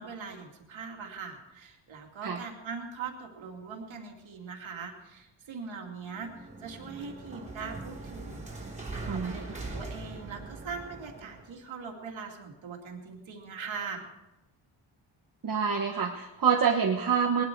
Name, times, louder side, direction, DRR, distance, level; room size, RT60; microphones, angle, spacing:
voice 1, 0.0-8.7 9.0-14.1, right 5 dB, 70° right, 2 dB, 2.6 m, -41 dB
sound 1, 6.0-11.5, right 2 dB, 15° right, 3.5 m, -41 dB
voice 2, 9.1-9.4 15.4-17.4, right 6 dB, 45° right, 1 dB, 1.3 m, -26 dB
20.0 x 12.0 x 4.6 m, 1.0 s
wide cardioid pair, 135°, 47 cm